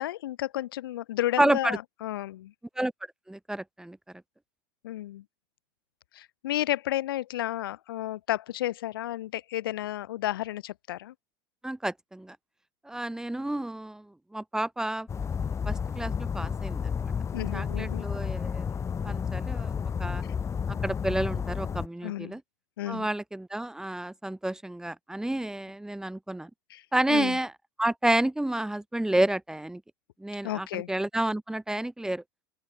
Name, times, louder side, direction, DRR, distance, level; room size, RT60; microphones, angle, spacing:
voice 1, 0.0-2.5 4.8-5.2 6.1-11.1 17.3-18.0 22.0-22.4 22.8-23.1 26.7-26.8 27.1-27.4 30.4-30.9, left 14 dB, 90° left, 2.7 m, -32 dB
voice 2, 1.4-1.8 2.8-2.9 3.3-4.0 11.6-12.4 12.9-14.1 14.3-15.4 15.7-17.1 17.5-18.7 19.0-20.2 20.7-22.4 22.9-26.5 26.9-27.5 27.8-29.8 30.2-32.2, right 1 dB, 5° right, 2.0 m, -30 dB
sound 1, 15.1-21.9, left 6 dB, 25° left, 2.2 m, -31 dB
open air
supercardioid pair, 110°, 12 cm